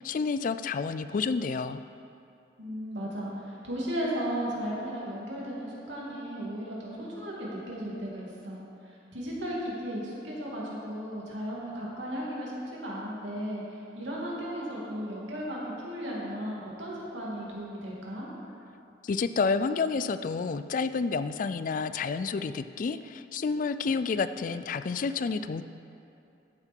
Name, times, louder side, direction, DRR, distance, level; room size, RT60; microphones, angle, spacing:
voice 1, 0.0-1.8 19.0-25.6, left 4 dB, 45° left, 12 dB, 0.3 m, -29 dB
voice 2, 2.6-8.6 9.1-13.6 13.9-18.3, equal, 90° right, -5 dB, 2.7 m, -35 dB
14.0 x 7.6 x 4.5 m, 2.7 s
head